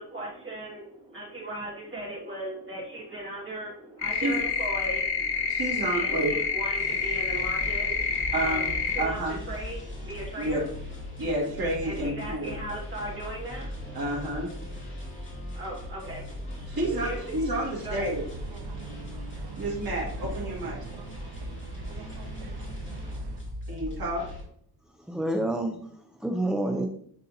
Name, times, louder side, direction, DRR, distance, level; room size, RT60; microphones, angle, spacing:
voice 1, 0.1-0.8 1.1-3.7 4.0-5.0 5.9-7.9 8.3-8.7 8.9-9.2 9.5-9.8 10.1-10.6 11.8-13.6 15.6-16.2 17.0-17.2 17.8-18.1, right 1 dB, 30° right, -5 dB, 2.0 m, -37 dB
sound 1, 4.0-9.0, left 5 dB, 80° left, 1.1 m, -28 dB
voice 2, 5.5-6.4 8.3-9.4 10.4-10.6 11.2-12.6 13.9-14.5 16.7-18.3 19.6-20.9 23.7-24.3, right 1 dB, 60° right, -4 dB, 2.3 m, -30 dB
sound 2, 6.7-24.4, left 1 dB, 30° left, 2.5 m, -39 dB
sound 3, 18.0-23.4, right 3 dB, 90° right, 0.9 m, -42 dB
voice 3, 25.0-26.9, right 1 dB, ahead, 4 dB, 0.3 m, -29 dB
10.0 x 3.9 x 2.8 m, 0.67 s
wide cardioid pair, 150°, 39 cm